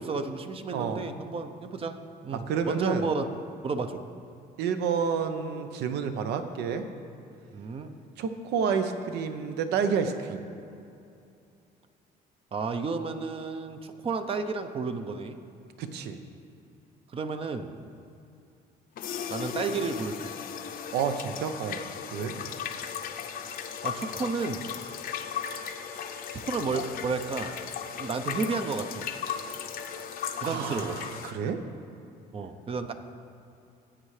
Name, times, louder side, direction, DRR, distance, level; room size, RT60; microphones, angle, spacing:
voice 1, 0.0-3.2 3.6-4.0 7.5-8.0 12.5-15.4 17.1-17.8 19.3-20.3 22.3-22.5 23.8-24.6 26.5-27.6 28.0-29.1 30.4-31.0 32.3-32.9, right 4 dB, 35° right, 8 dB, 0.6 m, -32 dB
voice 2, 0.7-1.1 2.3-3.1 4.6-6.9 8.2-10.4 15.8-16.2 20.9-21.8 22.1-22.3 29.3-29.4 30.4-31.6, right 6 dB, 80° right, 8 dB, 0.8 m, -29 dB
sound 1, 19.0-31.3, left 7 dB, 60° left, 0.7 m, -36 dB
16.0 x 7.9 x 3.3 m, 2.6 s
cardioid pair, 110°, 17 cm